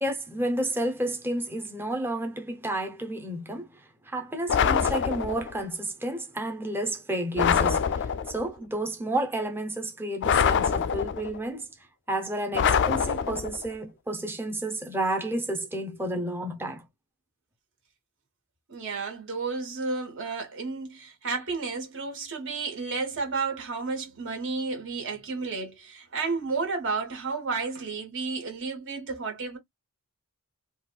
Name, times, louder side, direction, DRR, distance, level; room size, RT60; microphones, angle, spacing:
voice 1, 0.0-11.7 12.1-16.9, right 1 dB, 10° right, 0.6 m, -31 dB
sound 1, 4.5-5.6 7.4-8.5 10.2-11.4 12.5-13.7, left 7 dB, 55° left, 0.3 m, -25 dB
voice 2, 18.7-29.6, right 4 dB, 60° right, 1.5 m, -32 dB
4.0 x 2.3 x 2.2 m
head